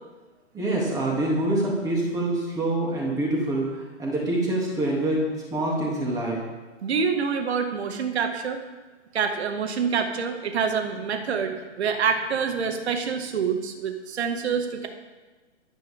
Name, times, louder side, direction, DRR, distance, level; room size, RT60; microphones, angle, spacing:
voice 1, 0.5-6.4, right 1 dB, 10° right, -3 dB, 2.9 m, -26 dB
voice 2, 6.8-8.6 9.1-14.9, right 6 dB, 60° right, 5 dB, 2.2 m, -26 dB
24.0 x 9.8 x 3.7 m, 1.2 s
hypercardioid pair, 160°, 37 cm